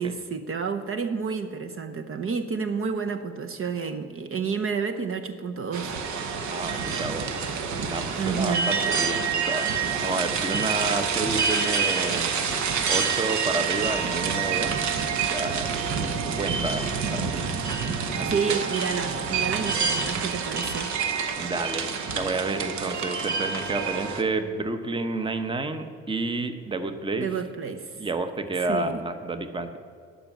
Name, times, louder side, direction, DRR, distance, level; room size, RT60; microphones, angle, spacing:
voice 1, 0.0-6.0 8.2-8.7 18.3-20.9 27.2-28.0 28.7-29.0, right 5 dB, 45° right, 7 dB, 0.8 m, -30 dB
sound 1, 5.7-24.2, right 5 dB, 70° right, 1.1 m, -27 dB
voice 2, 6.4-7.3 7.8-9.7 10.0-12.3 12.8-14.8 15.3-15.7 16.4-17.5 18.2-18.6 21.4-27.3 28.0-29.8, right 2 dB, 15° right, 9 dB, 0.9 m, -30 dB
12.0 x 5.3 x 9.0 m, 2.2 s
cardioid pair, 90°, 30 cm